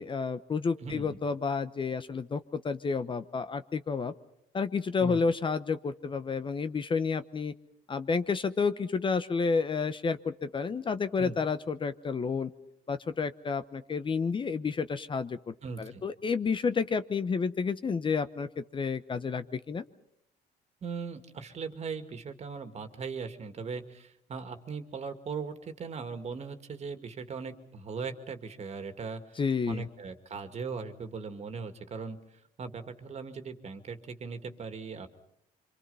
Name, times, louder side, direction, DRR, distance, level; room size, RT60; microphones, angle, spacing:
voice 1, 0.0-4.1 4.5-7.5 7.9-12.5 12.9-19.8 29.4-29.8, left 5 dB, 30° left, 12 dB, 0.9 m, -30 dB
voice 2, 0.8-1.2 5.0-5.2 11.2-11.4 15.6-16.0 20.8-29.4 29.7-32.2 32.6-35.1, right 5 dB, 40° right, 8 dB, 2.2 m, -39 dB
26.0 x 25.5 x 5.6 m, 0.74 s
cardioid pair, 110°, 17 cm